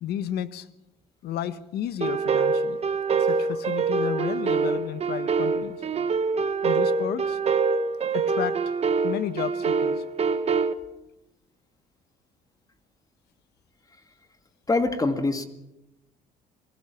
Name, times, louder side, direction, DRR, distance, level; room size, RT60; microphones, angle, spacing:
voice 1, 0.0-0.7 1.2-2.8 3.2-5.8 6.6-7.4 8.1-8.6 9.0-10.0, left 11 dB, 70° left, 13 dB, 1.3 m, -32 dB
sound 1, 2.0-10.7, right 5 dB, 40° right, 1.2 m, -25 dB
voice 2, 14.7-15.5, left 3 dB, 20° left, 7 dB, 2.1 m, -24 dB
27.5 x 19.0 x 5.9 m, 0.89 s
cardioid pair, 110°, 17 cm